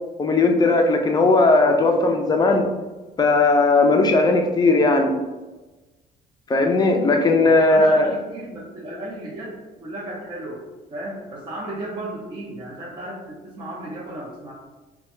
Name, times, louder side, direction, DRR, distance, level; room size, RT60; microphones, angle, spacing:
voice 1, 0.2-2.7 3.2-5.1 6.5-8.1, left 2 dB, 25° left, 3 dB, 0.5 m, -17 dB
voice 2, 7.4-9.6 9.8-10.6 10.9-14.5, right 1 dB, 25° right, -6 dB, 0.8 m, -34 dB
3.3 x 2.3 x 4.2 m, 1.2 s
cardioid pair, 110°, 17 cm